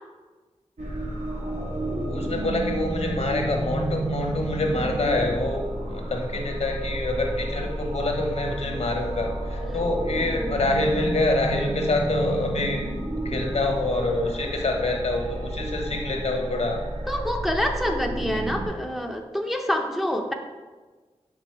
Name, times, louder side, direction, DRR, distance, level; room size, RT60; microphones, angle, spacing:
sound 1, 0.8-18.7, right 1 dB, 80° right, 1.1 m, -31 dB
voice 1, 2.1-12.9 13.2-16.8 18.3-18.4, left 2 dB, 70° left, 1 dB, 1.1 m, -26 dB
voice 2, 17.1-20.3, equal, ahead, 2 dB, 0.5 m, -27 dB
6.1 x 3.9 x 4.5 m, 1.3 s
wide cardioid pair, 85°, 12 cm